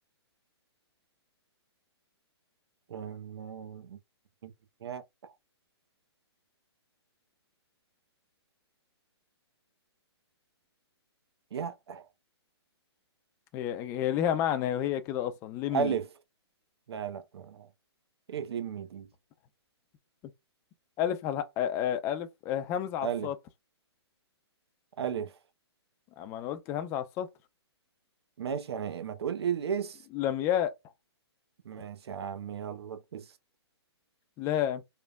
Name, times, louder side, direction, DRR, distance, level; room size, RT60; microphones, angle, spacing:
voice 1, 2.9-4.0 4.4-4.5 4.8-5.0 11.5-12.0 15.7-16.1 16.9-17.7 18.3-19.1 23.0-23.3 25.0-25.3 28.4-30.0 31.7-33.2, right 7 dB, 65° right, 0.6 m, -34 dB
voice 2, 13.5-15.9 21.0-23.4 26.2-27.3 30.1-30.7 34.4-34.8, left 10 dB, 20° left, 0.3 m, -30 dB
3.3 x 2.1 x 2.3 m
hypercardioid pair, 135°, 14 cm